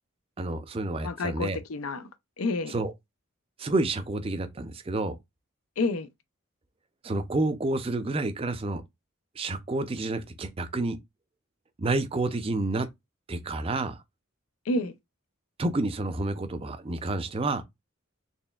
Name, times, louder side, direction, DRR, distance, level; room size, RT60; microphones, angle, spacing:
voice 1, 0.4-1.6 2.7-2.9 3.6-5.2 7.0-8.8 9.4-11.0 11.8-12.9 13.3-14.0 15.6-17.6, right 2 dB, 25° right, 0.5 m, -29 dB
voice 2, 1.0-2.1 2.4-2.7 5.8-6.1 14.7-14.9, left 2 dB, 90° left, 0.6 m, -29 dB
4.2 x 3.2 x 2.3 m
head